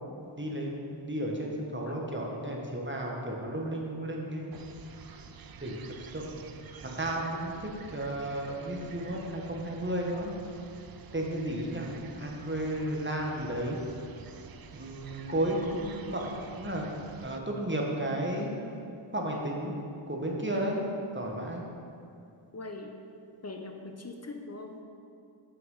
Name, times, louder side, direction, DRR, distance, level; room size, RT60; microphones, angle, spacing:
voice 1, 0.2-4.5 5.6-6.4 6.8-10.3 11.1-11.9 12.2-13.8 14.7-18.5 19.1-19.8 20.1-20.8 21.1-21.6, right 1 dB, 25° right, -1 dB, 1.4 m, -33 dB
sound 1, 4.5-17.4, right 6 dB, 45° right, 0.5 m, -49 dB
voice 2, 22.5-22.9 23.4-24.8, left 2 dB, 30° left, 3 dB, 0.9 m, -41 dB
6.1 x 5.9 x 5.6 m, 2.5 s
cardioid pair, 50°, 50 cm